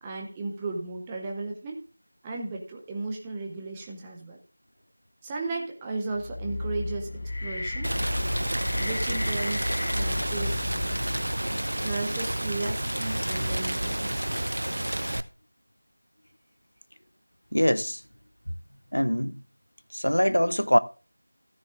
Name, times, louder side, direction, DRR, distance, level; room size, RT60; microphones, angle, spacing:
voice 1, 0.0-1.8 2.2-4.4 5.2-7.1 7.4-7.9 8.7-10.7 11.8-14.5, right 3 dB, 10° right, 0.8 m, -35 dB
sound 1, 6.1-11.4, left 2 dB, 35° left, 0.9 m, -33 dB
Rain, 7.8-15.2, right 1 dB, 60° right, 0.7 m, -29 dB
voice 2, 17.5-18.0 18.9-19.4 19.9-20.8, equal, 85° left, 0.7 m, -23 dB
14.0 x 9.8 x 2.5 m
figure-of-eight pair, 170°, 0 cm